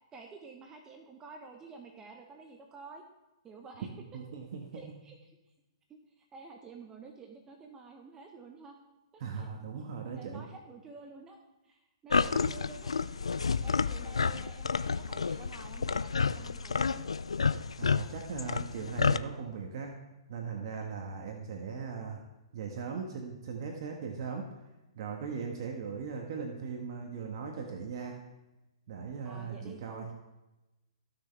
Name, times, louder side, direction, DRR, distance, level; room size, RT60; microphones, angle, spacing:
voice 1, 0.1-3.0 3.4-3.9 4.7-5.2 6.3-8.7 9.1-9.5 10.1-11.4 11.7-12.9 13.6-17.0 29.2-30.1, right 4 dB, 20° right, 2 dB, 1.2 m, -50 dB
voice 2, 4.1-4.9 9.2-10.4 17.8-20.0 20.3-22.2 22.5-24.5 24.9-28.2 28.9-30.1, right 5 dB, 55° right, 1 dB, 1.6 m, -39 dB
sound 1, 12.1-19.2, left 5 dB, 85° left, 0.4 m, -30 dB
16.0 x 6.4 x 3.5 m, 1.0 s
hypercardioid pair, 125°, 3 cm